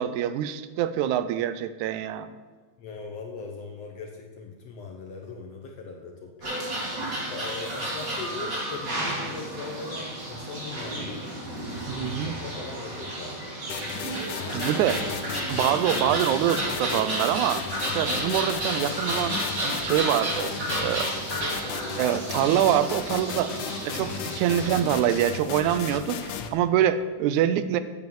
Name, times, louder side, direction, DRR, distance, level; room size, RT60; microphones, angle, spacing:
voice 1, 0.0-2.3 11.9-12.3 14.2-15.2 15.5-21.1 22.0-27.8, right 11 dB, 85° right, 12 dB, 2.0 m, -25 dB
voice 2, 2.8-6.7 7.2-11.3 12.2-13.6, left 4 dB, 65° left, 1 dB, 1.9 m, -40 dB
sound 1, 6.4-25.2, right 1 dB, 35° right, 3.3 m, -32 dB
sound 2, 13.7-26.5, left 7 dB, 85° left, 2.3 m, -35 dB
9.3 x 8.2 x 7.1 m, 1.4 s
omnidirectional pair, 3.4 m